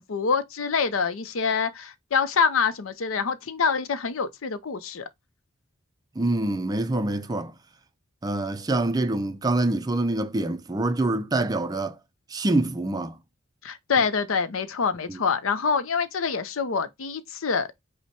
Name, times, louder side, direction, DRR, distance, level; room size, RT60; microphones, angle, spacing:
voice 1, 0.0-5.1 13.6-17.7, left 5 dB, 75° left, 0.6 m, -26 dB
voice 2, 6.2-7.6 8.2-12.0 12.3-13.2 15.1-15.2, right 2 dB, 20° right, 0.4 m, -25 dB
5.5 x 2.1 x 4.5 m
head